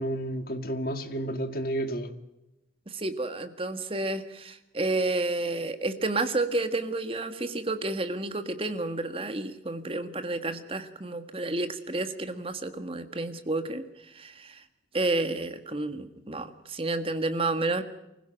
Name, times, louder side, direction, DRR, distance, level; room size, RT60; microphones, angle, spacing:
voice 1, 0.0-2.1, right 1 dB, 50° left, 1.9 m, -31 dB
voice 2, 2.9-14.6 14.9-17.8, right 2 dB, 30° right, 1.6 m, -30 dB
24.5 x 16.0 x 8.9 m
head